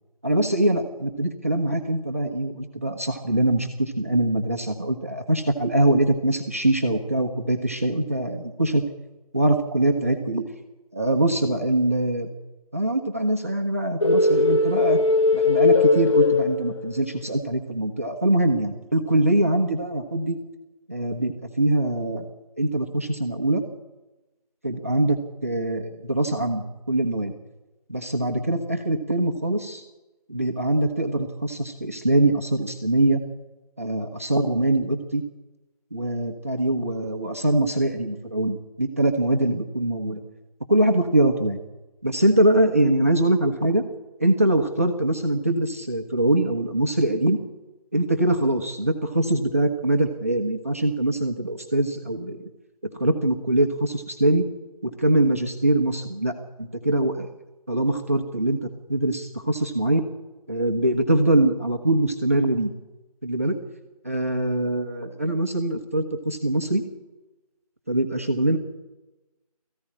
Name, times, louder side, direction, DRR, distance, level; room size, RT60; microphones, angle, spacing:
voice 1, 0.2-8.8 9.3-10.4 10.9-12.3 12.7-15.0 15.3-20.4 20.9-22.3 22.6-23.6 24.6-27.3 27.9-29.8 30.3-33.2 33.8-35.2 35.9-40.2 40.7-41.6 42.0-43.8 44.2-47.4 47.9-52.4 52.8-54.5 54.8-57.3 57.7-58.6 58.9-60.0 60.5-62.7 63.2-63.6 64.0-66.8 67.9-68.6, right 1 dB, 20° right, 3 dB, 1.1 m, -23 dB
sound 1, 14.0-17.2, left 3 dB, 50° left, 2.3 m, -19 dB
18.5 x 15.0 x 9.9 m, 1.1 s
figure-of-eight pair, 180°, 20 cm